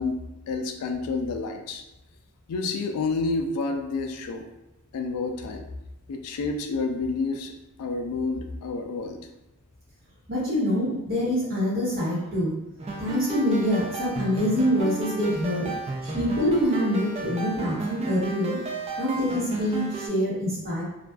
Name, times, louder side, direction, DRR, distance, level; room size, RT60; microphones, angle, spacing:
voice 1, 0.0-1.8 2.5-4.4 4.9-5.7 6.1-7.5 7.8-9.2, left 3 dB, 80° left, 4 dB, 0.3 m, -29 dB
voice 2, 10.3-12.5 13.0-15.7 16.0-18.6 19.0-20.8, equal, 45° right, -8 dB, 1.1 m, -25 dB
sound 1, 12.8-20.1, right 3 dB, 30° right, 0.4 m, -33 dB
2.4 x 2.2 x 2.3 m, 0.95 s
head